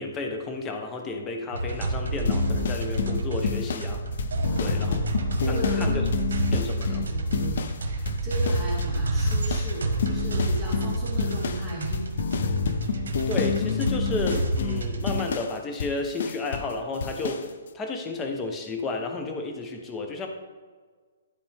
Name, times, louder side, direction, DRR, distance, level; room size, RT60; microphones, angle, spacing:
voice 1, 0.0-4.0 4.6-5.0 5.5-6.0 6.5-7.0 13.3-17.5 17.7-20.3, left 3 dB, 15° left, 4 dB, 0.9 m, -32 dB
sound 1, 1.5-15.2, right 2 dB, 85° right, 1.3 m, -28 dB
sound 2, 2.3-9.0 9.3-16.7 17.0-17.5, left 7 dB, 60° left, 0.5 m, -29 dB
voice 2, 4.4-5.0 5.4-6.0 6.9-12.1, right 1 dB, 10° right, -7 dB, 2.2 m, -36 dB
12.0 x 4.3 x 3.5 m, 1.5 s
hypercardioid pair, 160°, 0 cm